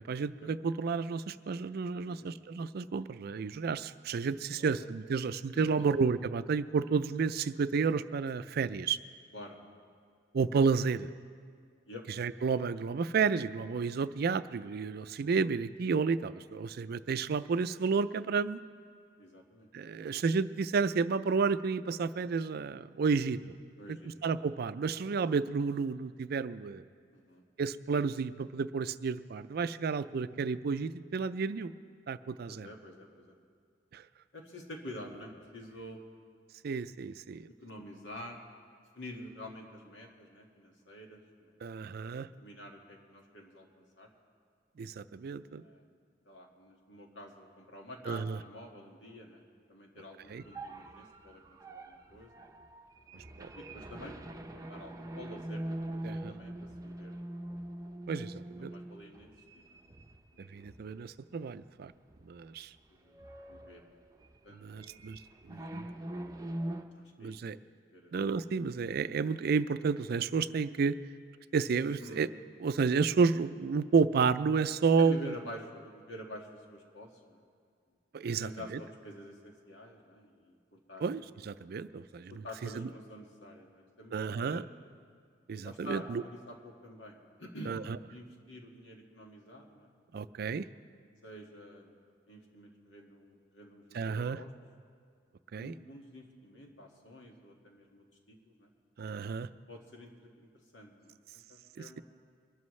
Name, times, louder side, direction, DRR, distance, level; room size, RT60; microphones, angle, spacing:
voice 1, 0.0-9.0 10.3-11.1 12.2-18.6 19.7-23.4 23.9-24.0 24.2-26.8 27.6-31.7 32.1-32.7 33.9-34.0 36.6-37.5 41.6-42.3 44.8-45.6 48.1-48.4 50.3-50.4 53.4-53.5 56.0-56.3 58.1-58.7 60.5-61.9 62.3-62.7 64.6-65.2 65.5-65.9 67.2-67.6 68.1-71.0 71.5-72.3 72.6-75.4 78.1-78.8 81.0-82.4 82.8-82.9 84.1-84.6 85.5-86.2 87.7-87.8 90.1-90.7 93.9-94.4 95.5-95.7 99.0-99.5, right 5 dB, 55° right, 13 dB, 0.4 m, -31 dB
voice 2, 1.9-2.3 4.5-4.8 5.5-5.9 9.3-9.6 11.9-12.0 19.2-19.7 23.8-24.1 25.2-25.3 27.1-27.4 32.5-33.4 34.3-36.0 37.6-38.4 39.0-41.6 42.3-44.1 45.5-45.9 46.3-49.4 49.7-52.3 53.6-54.2 54.5-56.5 56.8-57.3 57.9-58.0 58.6-59.8 60.3-60.8 62.9-64.0 64.4-65.0 66.9-67.4 67.9-68.1 72.0-72.2 75.0-77.4 78.3-81.1 82.3-84.1 84.5-84.7 85.6-87.8 88.1-89.9 91.2-91.9 92.3-94.0 94.3-94.5 95.6-98.7 99.7-102.0, left 1 dB, 75° left, 1 dB, 1.9 m, -48 dB
sound 1, 50.2-60.9 61.4-61.5 62.1-62.5 62.7-66.8, right 1 dB, 20° right, 0.7 m, -43 dB
23.5 x 12.5 x 3.2 m, 2.1 s
head